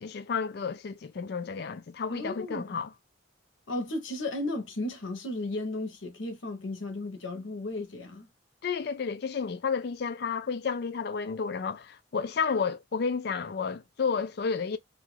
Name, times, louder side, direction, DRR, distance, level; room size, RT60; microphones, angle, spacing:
voice 1, 0.0-2.9 8.6-14.8, left 5 dB, 55° left, 0.4 m, -31 dB
voice 2, 2.1-2.8 3.7-8.3, left 2 dB, 85° left, 0.9 m, -34 dB
2.5 x 2.2 x 3.1 m
head